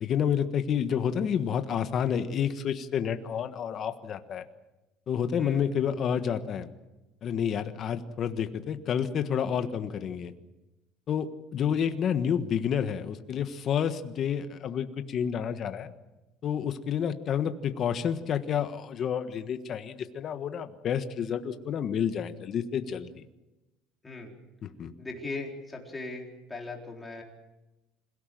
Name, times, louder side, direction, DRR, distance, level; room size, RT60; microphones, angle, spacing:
voice 1, 0.0-4.4 5.1-6.7 7.2-10.3 11.1-15.9 16.4-23.2 24.6-24.9, left 8 dB, 40° left, 8 dB, 1.4 m, -29 dB
voice 2, 24.0-24.3 25.0-27.2, left 3 dB, 10° left, 0 dB, 4.1 m, -39 dB
26.5 x 17.5 x 7.7 m, 1.0 s
cardioid pair, 150°, 0 cm